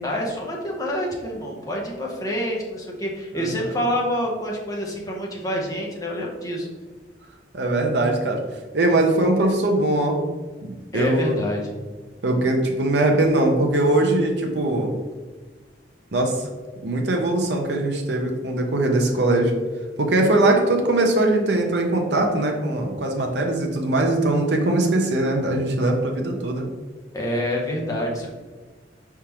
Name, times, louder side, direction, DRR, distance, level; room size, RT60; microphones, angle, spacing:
voice 1, 0.0-6.7 10.9-11.7 27.1-28.3, equal, 20° left, -2 dB, 0.8 m, -27 dB
voice 2, 7.5-8.4 8.7-10.2 10.6-11.4 12.2-14.9 16.1-16.4 16.8-19.5 20.0-26.7, right 2 dB, 70° right, 2 dB, 0.7 m, -21 dB
4.9 x 3.5 x 2.9 m, 1.3 s
head